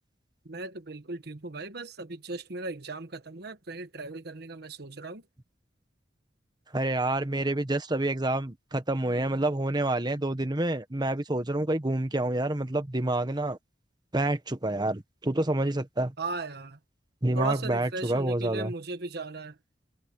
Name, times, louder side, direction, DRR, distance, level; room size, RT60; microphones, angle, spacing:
voice 1, 0.4-5.2 16.2-16.8 17.3-19.5, right 3 dB, 60° right, 1.2 m, -37 dB
voice 2, 6.7-13.6 14.1-16.1 17.2-18.7, right 1 dB, 25° right, 1.2 m, -28 dB
head